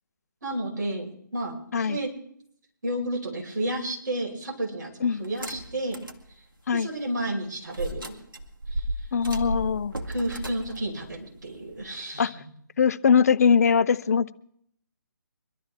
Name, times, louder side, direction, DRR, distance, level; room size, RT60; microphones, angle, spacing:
voice 1, 0.4-2.1 2.8-6.0 6.7-8.1 8.7-8.9 10.1-12.5, right 1 dB, 55° right, -2 dB, 5.3 m, -31 dB
sound 1, 5.2-6.2 6.7-6.8 7.7-12.0, right 1 dB, 85° right, 2.1 m, -34 dB
voice 2, 9.1-10.0 12.2-12.3 12.8-14.3, left 6 dB, 50° left, 15 dB, 0.7 m, -21 dB
24.0 x 12.5 x 3.7 m, 0.67 s
figure-of-eight pair, 145°, 11 cm